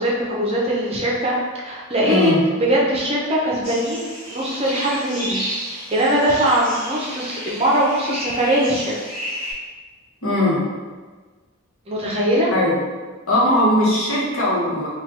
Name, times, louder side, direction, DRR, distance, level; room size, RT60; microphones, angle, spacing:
voice 1, 0.0-1.4 1.6-5.4 5.9-8.9 11.9-12.5, right 1 dB, 25° right, -4 dB, 0.5 m, -21 dB
voice 2, 2.1-2.4 10.2-10.6 12.5-12.8 13.3-14.9, left 1 dB, 75° left, -7 dB, 1.0 m, -19 dB
sound 1, 3.6-9.5, equal, 40° left, 1.3 m, -32 dB
3.3 x 2.3 x 2.8 m, 1.4 s
head